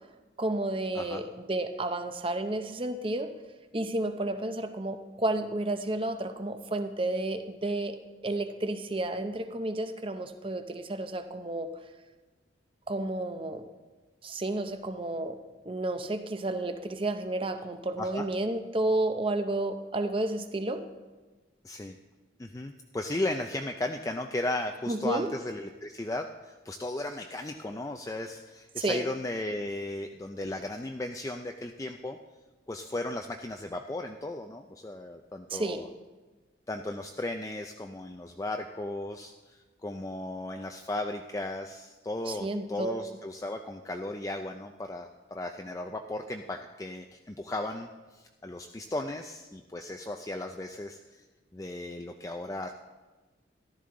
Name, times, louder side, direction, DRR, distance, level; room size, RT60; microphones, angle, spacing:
voice 1, 0.4-3.3 3.7-8.0 8.2-11.7 12.9-13.6 14.2-15.4 15.7-20.8 24.9-25.4 28.8-29.1 35.5-35.9 42.2-43.2, right 2 dB, 30° right, 8 dB, 0.6 m, -31 dB
voice 2, 21.6-22.0 22.4-32.2 32.7-35.9 36.7-51.2 51.5-52.7, left 2 dB, 15° left, 4 dB, 0.4 m, -36 dB
14.0 x 12.0 x 3.8 m, 1.2 s
head